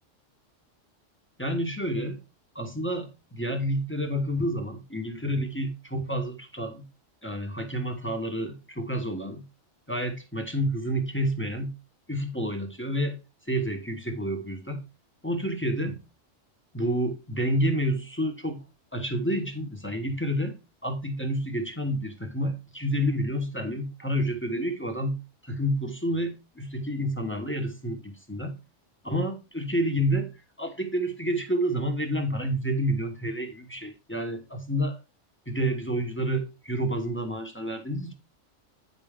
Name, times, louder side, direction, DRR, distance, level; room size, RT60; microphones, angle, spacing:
voice 1, 1.4-2.2 2.5-6.8 7.2-9.4 9.9-11.7 12.1-13.2 13.5-14.8 15.2-16.0 16.7-18.6 18.9-20.6 20.8-28.5 29.0-30.3 30.6-35.0 35.5-38.1, equal, 10° left, 1.2 m, -29 dB
9.5 x 5.3 x 3.6 m
omnidirectional pair, 1.3 m